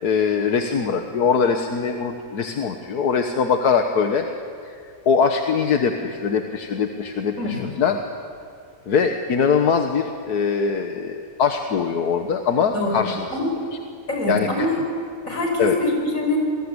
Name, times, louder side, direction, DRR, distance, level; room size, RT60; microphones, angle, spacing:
voice 1, 0.0-4.3 4.6-4.7 5.0-8.0 8.9-13.3 14.3-14.7 15.6-15.8, left 6 dB, 80° left, 5 dB, 1.8 m, -22 dB
voice 2, 12.7-13.0 13.3-13.5 14.1-14.8 15.2-16.4, left 2 dB, 55° left, 1 dB, 6.5 m, -24 dB
28.0 x 21.5 x 9.8 m, 2.3 s
omnidirectional pair, 1.6 m